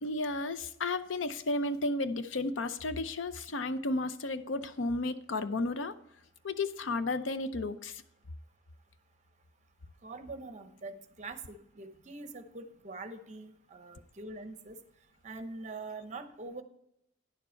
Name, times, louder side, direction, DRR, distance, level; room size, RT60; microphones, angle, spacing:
voice 1, 0.0-5.9 6.4-8.0, left 2 dB, 75° left, 12 dB, 0.6 m, -33 dB
voice 2, 10.0-14.8 15.2-16.6, right 3 dB, 40° right, 9 dB, 0.8 m, -44 dB
10.0 x 6.9 x 4.4 m, 0.77 s
head